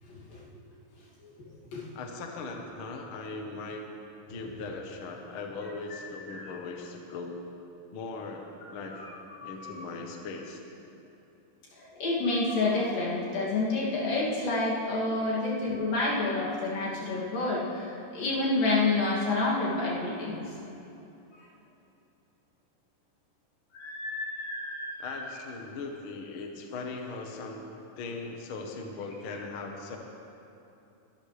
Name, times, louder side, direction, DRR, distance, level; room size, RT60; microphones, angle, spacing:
voice 1, 0.1-0.4 1.2-1.4 1.7-1.8 5.9-6.5 8.9-9.9 11.7-20.5 23.7-25.2 29.3-29.4, left 2 dB, 85° left, -6 dB, 4.3 m, -29 dB
voice 2, 1.9-3.8 4.3-7.4 7.9-9.0 9.4-10.6 15.0-15.4 25.0-27.6 28.0-30.0, left 3 dB, 55° left, 2 dB, 1.5 m, -39 dB
23.0 x 12.5 x 3.4 m, 2.8 s
omnidirectional pair, 3.8 m